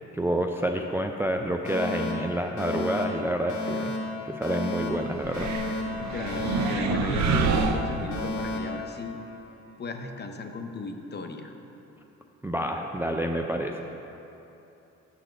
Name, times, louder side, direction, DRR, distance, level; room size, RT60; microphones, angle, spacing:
voice 1, 0.1-3.9 4.2-5.5 12.4-13.8, right 1 dB, 10° right, 3 dB, 0.4 m, -28 dB
Alarm, 1.6-9.7, left 2 dB, 70° left, 1.9 m, -33 dB
sound 1, 5.2-8.6, right 5 dB, 65° right, 0.6 m, -28 dB
voice 2, 6.0-9.2 9.8-11.5, left 3 dB, 35° left, 5 dB, 0.8 m, -36 dB
10.0 x 4.2 x 6.6 m, 2.9 s
cardioid pair, 90°, 30 cm